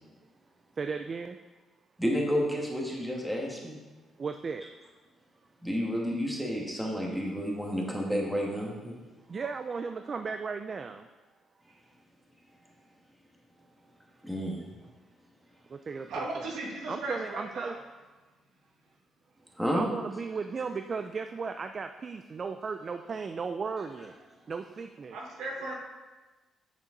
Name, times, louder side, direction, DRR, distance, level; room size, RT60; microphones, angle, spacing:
voice 1, 0.8-1.4 4.2-4.6 9.3-11.1 15.7-16.1 16.9-17.8 19.7-25.2, right 5 dB, 40° right, 7 dB, 0.4 m, -35 dB
voice 2, 2.0-3.8 5.6-8.9 14.2-14.6 19.6-19.9, equal, 5° right, -2 dB, 2.0 m, -30 dB
voice 3, 16.1-17.8 25.1-25.7, right 2 dB, 80° right, -2 dB, 2.0 m, -36 dB
8.3 x 6.8 x 3.9 m, 1.2 s
cardioid pair, 90°, 0 cm